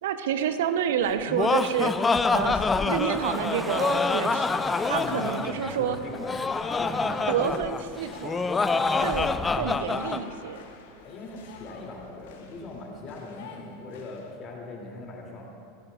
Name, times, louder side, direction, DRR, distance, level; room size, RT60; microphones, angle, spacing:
voice 1, 0.0-6.0 7.3-8.4 9.0-10.6, right 8 dB, 65° right, 10 dB, 0.7 m, -29 dB
Laughter, 1.1-10.2, left 4 dB, 15° left, 0.4 m, -26 dB
sound 1, 2.4-14.3, left 4 dB, 60° left, 1.1 m, -46 dB
sound 2, 2.9-6.2 7.1-9.3, right 1 dB, 5° right, 0.9 m, -40 dB
voice 2, 4.9-5.3 5.8-6.2 6.7-7.5 7.9-8.0 11.0-15.4, left 3 dB, 35° left, -1 dB, 2.6 m, -40 dB
16.5 x 14.5 x 2.4 m, 2.4 s
figure-of-eight pair, 85°, 0 cm